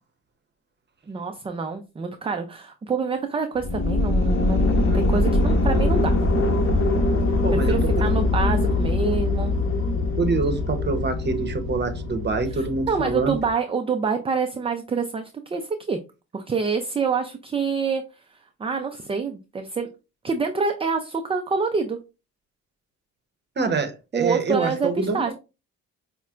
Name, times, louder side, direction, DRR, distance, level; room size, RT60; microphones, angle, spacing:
voice 1, 1.1-6.2 7.5-9.5 12.5-16.0 16.3-18.0 18.6-19.9 20.2-22.0 24.1-25.3, right 5 dB, 20° right, 0.4 m, -26 dB
sound 1, 3.6-13.5, left 2 dB, 45° left, 1.0 m, -22 dB
voice 2, 7.4-8.1 10.2-13.4 23.6-25.3, right 4 dB, 35° right, 0.8 m, -25 dB
5.5 x 2.1 x 2.4 m
cardioid pair, 90°, 30 cm